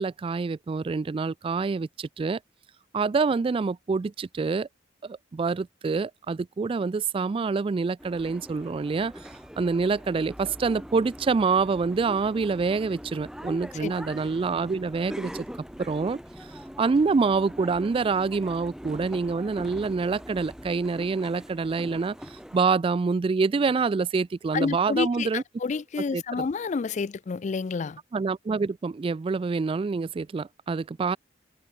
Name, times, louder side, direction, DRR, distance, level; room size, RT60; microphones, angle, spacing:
voice 1, 0.0-2.4 2.9-4.7 5.0-9.1 9.6-15.5 15.8-16.2 16.8-25.4 26.1-26.4 28.1-31.2, right 4 dB, 30° right, 0.3 m, -26 dB
sound 1, 8.0-22.6, equal, 5° right, 5.1 m, -42 dB
voice 2, 24.5-28.0, left 5 dB, 40° left, 0.4 m, -29 dB
head